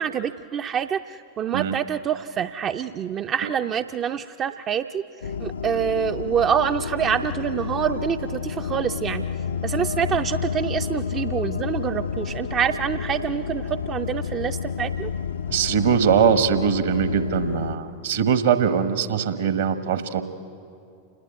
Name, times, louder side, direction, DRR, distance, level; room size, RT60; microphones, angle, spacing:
voice 1, 0.0-9.2 9.6-15.1, right 8 dB, 30° right, 8 dB, 0.5 m, -26 dB
sound 1, 5.2-17.8, left 6 dB, 70° left, 0.6 m, -30 dB
voice 2, 15.5-20.2, right 7 dB, 60° right, 10 dB, 1.4 m, -21 dB
28.0 x 20.5 x 8.1 m, 2.5 s
figure-of-eight pair, 90°, 0 cm